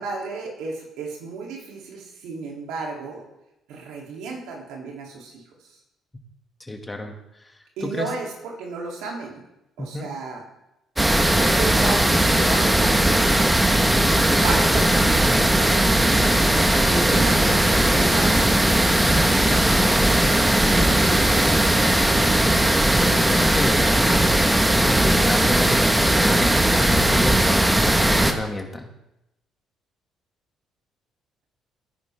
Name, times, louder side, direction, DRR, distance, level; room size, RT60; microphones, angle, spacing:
voice 1, 0.0-3.2 3.7-5.4 7.8-9.4 9.8-10.4 11.4-13.0 14.4-18.3 20.4-21.6, right 4 dB, 80° right, -1 dB, 3.1 m, -33 dB
voice 2, 6.6-8.1 9.8-10.1 17.4-18.1 19.3-19.9 22.4-22.6 22.9-28.9, left 1 dB, 20° left, 3 dB, 2.2 m, -31 dB
sound 1, 11.0-28.3, right 1 dB, 10° right, 1.5 m, -18 dB
16.0 x 9.8 x 3.6 m, 0.90 s
supercardioid pair, 65°, 0 cm